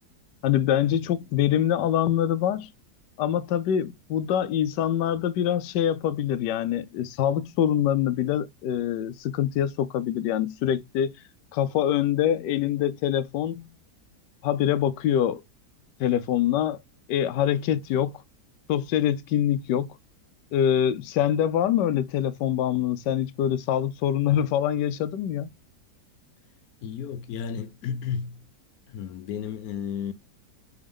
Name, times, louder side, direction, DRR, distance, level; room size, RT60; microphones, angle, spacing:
voice 1, 0.4-2.7 3.2-11.1 11.5-13.7 14.4-15.4 16.0-16.8 17.1-18.1 18.7-19.9 20.5-25.5, left 10 dB, 85° left, 1.2 m, -24 dB
voice 2, 26.8-28.5 28.9-30.1, left 7 dB, 70° left, 1.0 m, -33 dB
4.2 x 3.6 x 3.5 m
omnidirectional pair, 1.8 m